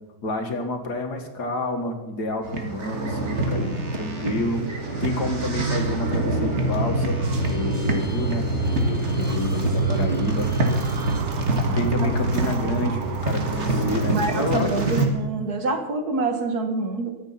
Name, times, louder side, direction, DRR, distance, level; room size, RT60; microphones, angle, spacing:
voice 1, 0.2-4.6 5.0-7.2 7.5-10.5 11.7-14.9, left 2 dB, 65° left, 5 dB, 2.3 m, -29 dB
sound 1, 2.4-15.1, right 2 dB, 40° right, 2.0 m, -25 dB
sound 2, 3.2-15.1, left 1 dB, 25° left, 6.7 m, -41 dB
sound 3, 4.3-15.2, right 8 dB, 90° right, 1.5 m, -34 dB
voice 2, 14.1-17.1, right 3 dB, 60° right, 6 dB, 2.1 m, -26 dB
23.5 x 8.1 x 5.8 m, 1.1 s
omnidirectional pair, 1.9 m